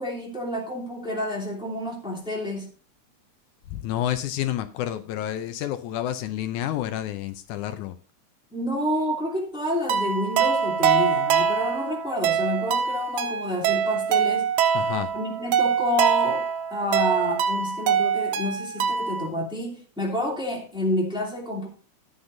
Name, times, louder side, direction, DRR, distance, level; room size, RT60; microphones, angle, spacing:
voice 1, 0.0-2.7 8.5-14.5 15.1-21.7, equal, ahead, 2.3 m, -29 dB
voice 2, 3.7-7.9 14.7-15.1, left 12 dB, 80° left, 2.1 m, -29 dB
sound 1, 9.9-19.3, right 7 dB, 90° right, 2.4 m, -24 dB
13.5 x 8.9 x 2.6 m
omnidirectional pair, 3.5 m